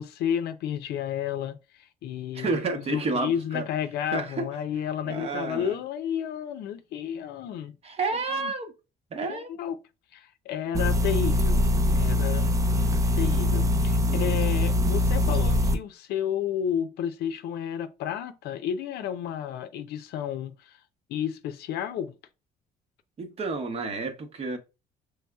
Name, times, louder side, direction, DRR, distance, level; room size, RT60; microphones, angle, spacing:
voice 1, 0.0-1.6 2.0-7.7 8.1-8.5 9.3-9.7 10.1-12.5 13.1-20.7 21.1-22.1, left 9 dB, 75° left, 0.6 m, -31 dB
voice 2, 2.3-3.7 4.1-4.5 5.0-5.8 7.8-8.7 9.1-9.6 14.0-14.4 23.2-24.6, right 3 dB, 35° right, 0.9 m, -30 dB
sound 1, 10.7-15.7, left 1 dB, 20° right, 0.5 m, -23 dB
5.5 x 3.3 x 2.3 m
cardioid pair, 110°, 17 cm